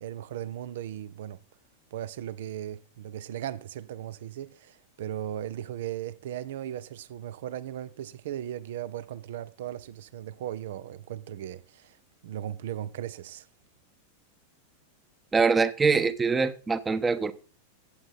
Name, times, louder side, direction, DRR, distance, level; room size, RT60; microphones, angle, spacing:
voice 1, 0.0-1.4 1.9-12.0 12.2-13.5, right 11 dB, 55° right, 0.8 m, -37 dB
voice 2, 15.3-17.3, right 4 dB, 15° right, 1.0 m, -24 dB
14.5 x 8.9 x 4.1 m
figure-of-eight pair, 90°, 0 cm